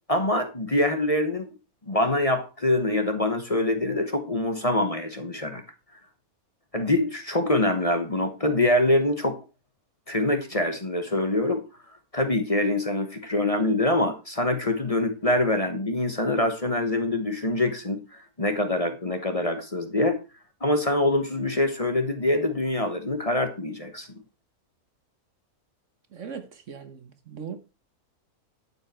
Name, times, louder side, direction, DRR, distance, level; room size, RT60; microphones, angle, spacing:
voice 1, 0.1-1.5 1.9-5.6 6.7-9.4 10.1-11.6 12.1-18.0 18.4-20.2 20.6-24.2, left 1 dB, 25° left, 1.3 m, -24 dB
voice 2, 26.1-27.6, right 6 dB, 55° right, 1.4 m, -39 dB
11.5 x 7.4 x 4.4 m
omnidirectional pair, 1.6 m